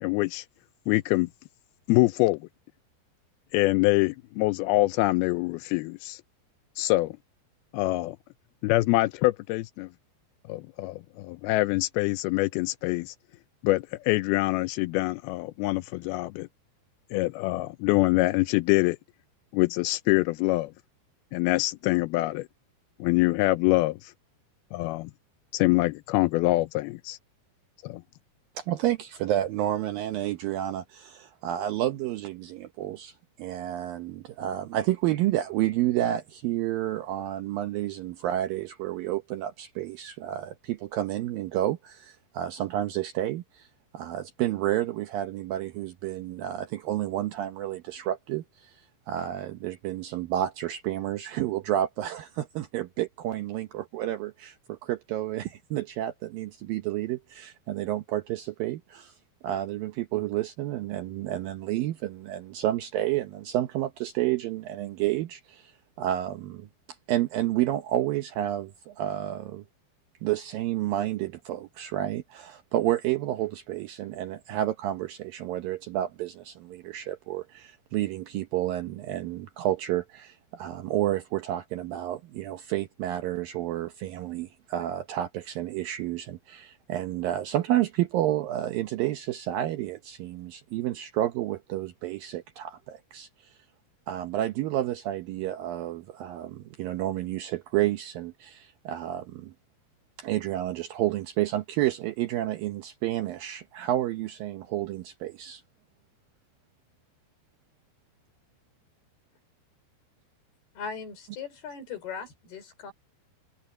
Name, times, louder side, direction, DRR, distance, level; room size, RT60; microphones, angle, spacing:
voice 1, 0.0-0.5 0.9-1.3 1.9-2.5 3.5-6.2 6.8-7.1 7.7-8.2 8.6-9.9 10.5-13.2 13.6-16.5 17.1-19.0 19.5-20.7 21.3-22.5 23.0-24.1 24.7-25.1 25.5-27.2 27.8-28.0, left 20 dB, 90° left, 2.2 m, -25 dB
voice 2, 28.6-43.7 43.9-59.2 59.4-66.7 67.1-69.6 70.2-93.6 94.1-99.5 100.2-105.6, right 13 dB, 75° right, 2.2 m, -30 dB
voice 3, 110.8-112.9, left 6 dB, 65° left, 6.4 m, -39 dB
omnidirectional pair, 5.0 m